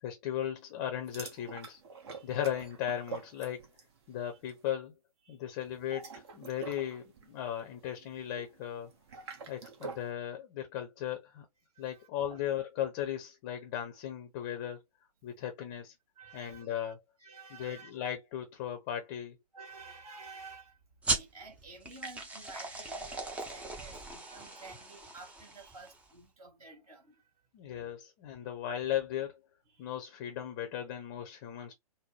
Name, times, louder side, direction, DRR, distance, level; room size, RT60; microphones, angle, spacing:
voice 1, 0.0-1.8 2.2-3.7 4.1-4.9 5.3-8.9 9.5-11.5 11.8-14.8 15.2-15.9 16.3-17.0 17.5-19.4 27.5-29.4 29.8-31.7, left 10 dB, 25° left, 0.8 m, -37 dB
sound 1, 1.0-4.0 4.2-4.6 5.7-10.1, right 5 dB, 45° right, 1.2 m, -46 dB
voice 2, 11.7-12.4 16.2-16.7 17.2-17.9 19.5-20.8 21.1-27.3 28.4-28.5 29.7-30.0, right 4 dB, 65° right, 2.2 m, -51 dB
sound 2, 21.0-26.1, right 2 dB, 5° right, 0.7 m, -38 dB
3.9 x 2.1 x 3.2 m
figure-of-eight pair, 125°, 20 cm